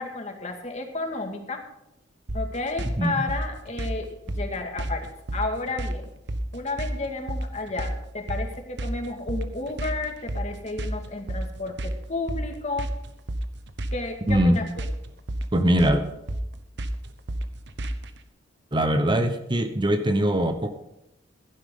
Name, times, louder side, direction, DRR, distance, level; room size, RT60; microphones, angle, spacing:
voice 1, 0.0-1.6 2.3-6.1 6.5-12.9 13.9-14.8, left 3 dB, 40° left, 4 dB, 2.1 m, -32 dB
sound 1, 2.3-18.2, right 1 dB, 65° right, 1.1 m, -31 dB
voice 2, 14.3-14.6 15.5-16.0 18.7-20.7, right 1 dB, 25° right, 8 dB, 0.9 m, -22 dB
15.5 x 11.5 x 3.8 m, 0.85 s
head